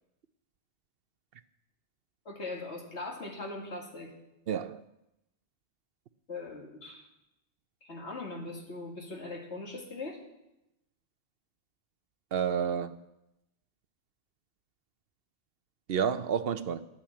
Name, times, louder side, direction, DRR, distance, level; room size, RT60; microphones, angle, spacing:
voice 1, 2.3-4.1 6.3-7.1 7.8-10.2, left 2 dB, 75° left, 2.7 m, -40 dB
voice 2, 4.5-4.8 12.3-13.0 15.9-16.9, right 7 dB, 65° right, 0.8 m, -30 dB
11.5 x 9.0 x 8.5 m
omnidirectional pair, 1.2 m